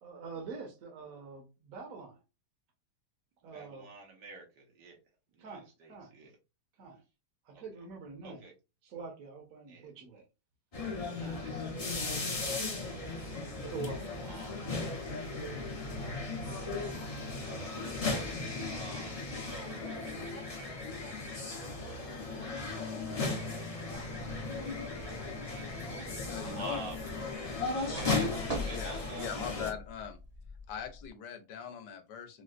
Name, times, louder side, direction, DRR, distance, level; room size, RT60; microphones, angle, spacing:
voice 1, 0.0-2.2 3.4-3.9 5.4-6.1 6.8-7.0 7.5-8.4 8.8-10.2 13.7-14.1, right 4 dB, 60° right, 1 dB, 1.3 m, -45 dB
voice 2, 3.4-5.0 5.3-6.4 7.5-7.6 8.2-8.5 9.7-9.9 11.1-13.4 14.2-14.6 17.4-20.4 23.4-24.2 25.1-25.9 26.5-27.0 27.9-29.3, right 3 dB, 85° right, 1 dB, 1.6 m, -48 dB
sound 1, 10.7-29.7, left 3 dB, 35° left, 0.6 m, -36 dB
sound 2, 24.2-31.1, equal, 20° right, 0.7 m, -44 dB
voice 3, 26.3-26.8 28.7-30.2 30.7-32.4, left 7 dB, 80° left, 8 dB, 1.3 m, -41 dB
4.4 x 2.1 x 2.4 m, 0.28 s
omnidirectional pair, 1.8 m